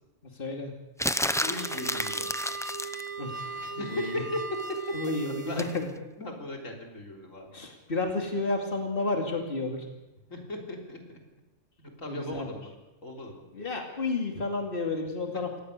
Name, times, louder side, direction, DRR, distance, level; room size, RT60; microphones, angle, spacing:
voice 1, 0.3-0.7 3.2-4.2 4.9-5.9 7.5-9.9 12.1-12.5 13.5-15.6, left 3 dB, 45° left, 3 dB, 2.9 m, -31 dB
sound 1, 1.0-3.1 5.6-5.8, left 1 dB, 5° left, 0.4 m, -30 dB
sound 2, 1.1-6.0, right 4 dB, 30° right, 0.8 m, -39 dB
voice 2, 1.4-2.3 3.6-4.4 5.3-5.6 6.2-7.5 10.3-11.2 11.8-12.7 13.0-13.4 15.3-15.4, left 2 dB, 85° left, 1 dB, 4.0 m, -37 dB
25.0 x 18.5 x 6.7 m, 1.0 s
omnidirectional pair, 1.3 m